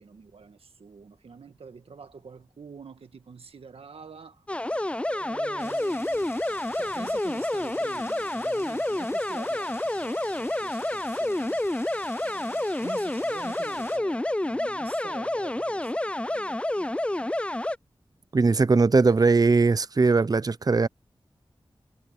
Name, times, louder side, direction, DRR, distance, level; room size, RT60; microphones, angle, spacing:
voice 1, 0.0-4.5 5.1-11.6 12.2-17.3, right 5 dB, 90° right, 1.8 m, -46 dB
sound 1, 4.5-17.8, left 1 dB, 10° left, 0.4 m, -29 dB
sound 2, 5.6-14.0, left 2 dB, 30° left, 7.0 m, -47 dB
voice 2, 18.3-20.9, right 4 dB, 40° right, 0.6 m, -20 dB
wide cardioid pair, 55°, 10 cm